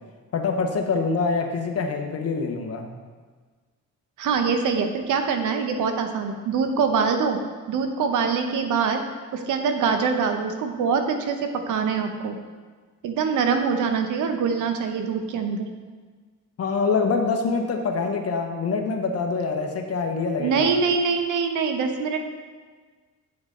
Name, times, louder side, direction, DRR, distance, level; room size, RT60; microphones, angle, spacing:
voice 1, 0.3-2.9 16.6-20.7, left 4 dB, 55° left, 4 dB, 1.1 m, -25 dB
voice 2, 4.2-7.4 7.7-9.0 9.3-12.4 13.0-15.7 20.4-22.3, right 5 dB, 80° right, 6 dB, 0.9 m, -24 dB
8.7 x 6.1 x 3.8 m, 1.4 s
cardioid pair, 90°, 30 cm